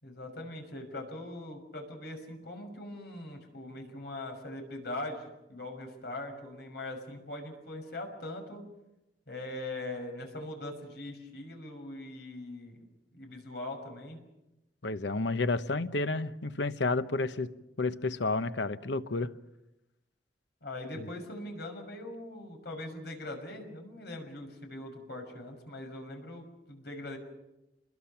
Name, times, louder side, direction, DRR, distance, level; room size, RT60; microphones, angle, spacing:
voice 1, 0.0-8.6 9.3-12.8 13.1-14.2 20.6-27.2, left 1 dB, 65° left, 4 dB, 6.2 m, -41 dB
voice 2, 14.8-17.5 17.8-19.3 21.0-21.1, left 3 dB, 90° left, 11 dB, 1.0 m, -31 dB
28.0 x 22.0 x 5.9 m, 0.94 s
head